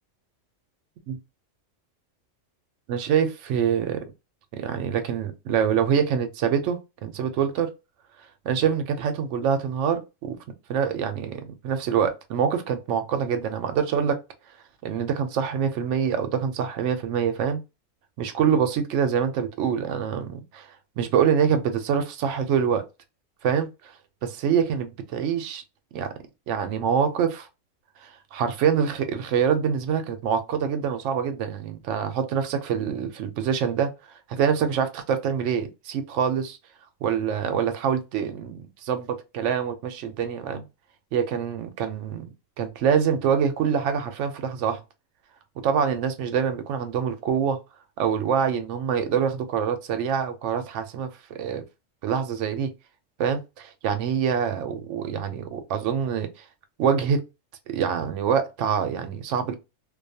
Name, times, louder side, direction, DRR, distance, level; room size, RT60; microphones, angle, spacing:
voice 1, 2.9-4.1 4.5-7.7 8.4-10.4 10.7-14.2 14.8-17.6 18.2-20.7 21.0-22.8 23.4-23.9 24.2-25.6 25.9-26.1 26.5-27.5 28.0-33.9 34.3-36.6 37.0-40.6 41.1-44.8 45.6-47.6 48.0-51.6 52.0-52.7 53.2-56.3 56.8-57.2 57.7-59.6, right 7 dB, 70° right, 0.9 m, -25 dB
2.4 x 2.3 x 2.6 m
omnidirectional pair, 1.3 m